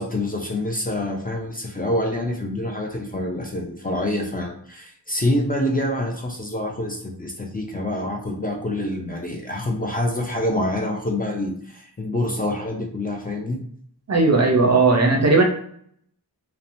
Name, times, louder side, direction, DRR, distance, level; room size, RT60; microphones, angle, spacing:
voice 1, 0.0-13.6, left 1 dB, 20° left, 0 dB, 0.4 m, -26 dB
voice 2, 14.1-15.4, right 3 dB, 40° right, 3 dB, 0.5 m, -16 dB
2.8 x 2.0 x 2.5 m, 0.64 s
wide cardioid pair, 85°, 41 cm